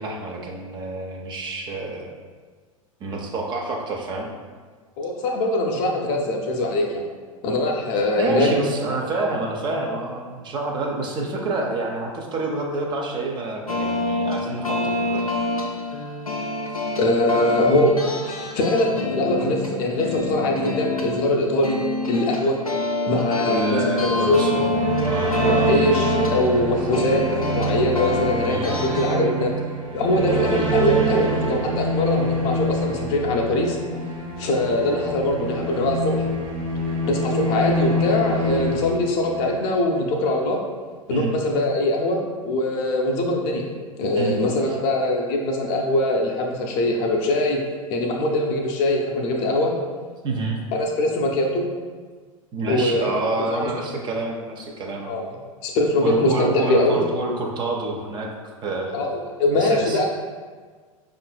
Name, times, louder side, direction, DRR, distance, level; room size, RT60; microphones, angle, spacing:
voice 1, 0.0-2.1 3.0-4.3 8.2-15.2 23.4-25.7 28.5-28.7 41.1-41.3 44.2-44.4 50.2-50.6 52.5-55.2 56.0-58.3 58.6-59.0 59.5-60.0, right 2 dB, 25° right, 0 dB, 0.5 m, -28 dB
voice 2, 5.0-7.0 7.4-8.5 17.0-17.9 18.2-21.8 22.1-22.6 23.1-24.5 25.3-27.3 27.5-29.5 29.9-33.8 34.4-36.3 37.1-40.6 41.1-43.6 44.0-47.6 47.9-49.7 50.7-51.6 52.7-53.2 53.5-53.7 55.1-55.3 55.6-57.0 58.9-60.1, left 1 dB, 40° left, 1 dB, 0.6 m, -22 dB
sound 1, 13.7-29.2, left 2 dB, 90° left, 0.4 m, -27 dB
sound 2, 24.5-39.6, right 1 dB, 65° right, 1.3 m, -25 dB
5.3 x 2.5 x 2.3 m, 1.5 s
figure-of-eight pair, 85°, 18 cm